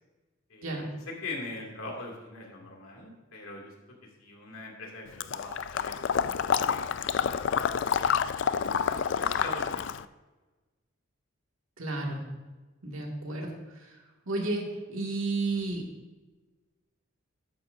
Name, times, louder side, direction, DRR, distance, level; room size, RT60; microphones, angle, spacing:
voice 1, 0.5-0.9 1.2-3.7 4.2-8.2 8.6-9.8, left 2 dB, 85° left, 0 dB, 2.4 m, -42 dB
Water / Liquid, 5.2-10.0, left 7 dB, 55° left, 0.3 m, -28 dB
voice 2, 11.8-12.3 12.8-13.9 14.3-15.8, right 2 dB, 75° right, 0 dB, 2.1 m, -32 dB
12.5 x 9.2 x 2.7 m, 1.2 s
head